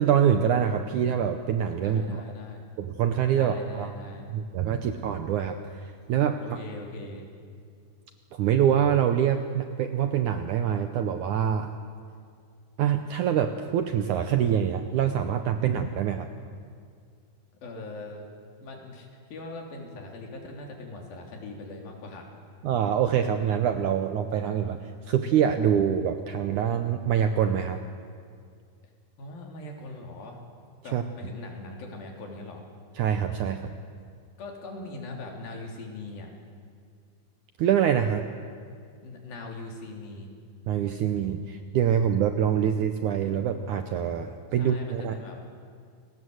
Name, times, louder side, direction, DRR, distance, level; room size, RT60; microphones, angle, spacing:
voice 1, 0.0-2.2 2.8-3.9 4.3-6.4 8.3-11.7 12.8-16.3 22.6-24.8 25.1-27.8 30.9-31.0 33.0-33.7 37.6-38.2 40.7-45.1, right 9 dB, 75° right, 7 dB, 1.9 m, -25 dB
voice 2, 1.8-2.6 3.3-4.3 6.4-7.3 17.6-18.2 18.6-22.3 29.2-30.4 30.8-32.7 34.4-36.3 39.0-40.3 44.6-45.4, left 2 dB, 65° left, 1 dB, 5.0 m, -41 dB
29.5 x 19.0 x 7.9 m, 2.2 s
omnidirectional pair, 4.4 m